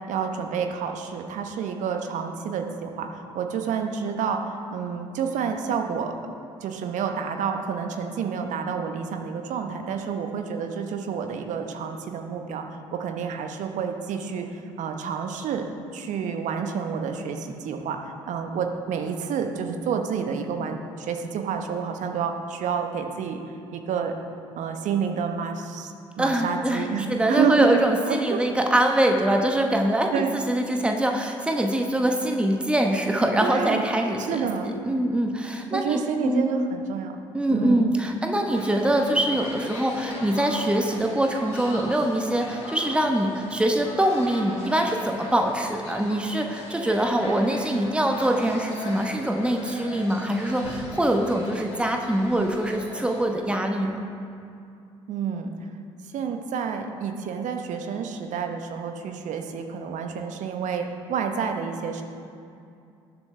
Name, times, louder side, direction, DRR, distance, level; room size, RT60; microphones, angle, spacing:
voice 1, 0.1-6.1 6.6-12.6 12.9-14.5 14.8-15.7 15.9-23.4 23.7-24.1 24.6-28.4 30.1-30.4 33.4-33.8 34.2-34.8 35.7-37.1 37.5-37.9 55.1-55.5 56.1-62.0, right 6 dB, 55° right, 5 dB, 1.1 m, -29 dB
voice 2, 26.2-34.5 34.9-36.5 37.3-54.0, right 1 dB, 5° right, 3 dB, 1.1 m, -24 dB
sound 1, 38.5-53.2, left 2 dB, 75° left, 2.8 m, -39 dB
19.5 x 7.4 x 3.4 m, 2.5 s
figure-of-eight pair, 50°, 15 cm